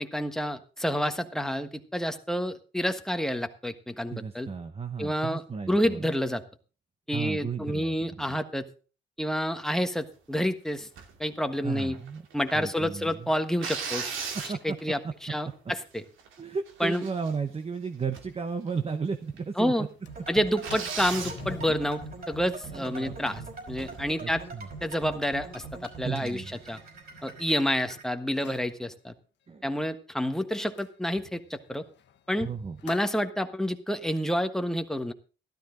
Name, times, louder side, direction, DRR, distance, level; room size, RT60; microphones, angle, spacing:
voice 1, 0.0-4.5 5.0-6.4 7.1-8.6 9.2-10.9 11.2-12.0 12.3-14.2 14.4-16.0 16.8-17.0 19.6-19.9 20.3-22.0 22.3-23.4 23.7-24.4 24.8-26.8 27.2-29.1 29.6-31.8 32.3-32.5 32.8-35.1, equal, ahead, 7 dB, 1.4 m, -29 dB
voice 2, 4.1-6.1 7.1-8.4 11.6-12.3 12.5-13.3 14.5-14.8 15.0-15.1 16.4-19.9 22.7-23.5 24.2-24.7 26.0-26.6 29.5-29.6 32.4-32.8, right 5 dB, 30° right, 8 dB, 1.0 m, -34 dB
sound 1, 11.0-11.2 11.7-12.6 13.6-14.9 15.5-15.6 16.0-16.3 16.7-17.6 18.1-18.4 18.7-18.8 19.4-19.5 19.7-19.8 20.6-21.4 23.7-24.1, right 6 dB, 80° right, 2.4 m, -36 dB
Sliding door, 18.3-18.4 18.7-18.8 19.2-19.5 19.8-27.8 28.3-28.8 30.8-33.2, left 9 dB, 65° left, 1.3 m, -49 dB
sound 2, 20.0-28.0, right 4 dB, 50° right, 5.5 m, -43 dB
13.0 x 12.5 x 3.9 m, 0.36 s
cardioid pair, 90°, 20 cm